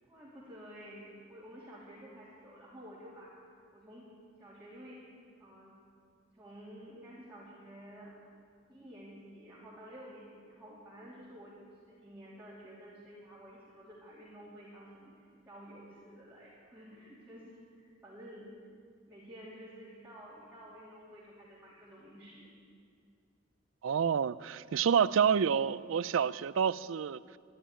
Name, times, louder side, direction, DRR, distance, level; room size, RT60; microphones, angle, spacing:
voice 1, 0.1-3.3 3.7-4.1 4.4-5.0 5.4-5.8 6.3-8.1 8.7-11.5 11.9-18.5 19.0-22.5, equal, 10° right, -9 dB, 2.9 m, -51 dB
voice 2, 23.8-27.2, right 7 dB, 85° right, 18 dB, 0.4 m, -28 dB
12.5 x 10.5 x 9.9 m, 2.2 s
head